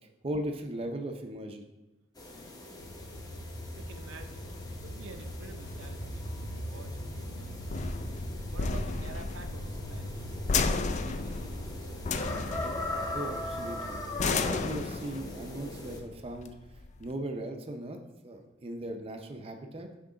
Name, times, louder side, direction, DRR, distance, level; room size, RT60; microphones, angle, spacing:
voice 1, 0.2-1.6 13.1-16.5 17.0-18.0 18.2-19.9, right 1 dB, 30° right, 4 dB, 0.5 m, -38 dB
sound 1, 2.2-16.0, left 2 dB, 20° left, 0.8 m, -41 dB
sound 2, 2.8-14.2, equal, 60° left, 0.8 m, -41 dB
voice 2, 3.7-4.4 4.7-6.2 6.5-7.7 8.5-10.4 10.9-12.1, right 3 dB, 75° right, 7 dB, 0.6 m, -50 dB
sound 3, 4.1-17.1, left 4 dB, 35° left, 0.4 m, -34 dB
6.0 x 5.9 x 3.8 m, 1.1 s
head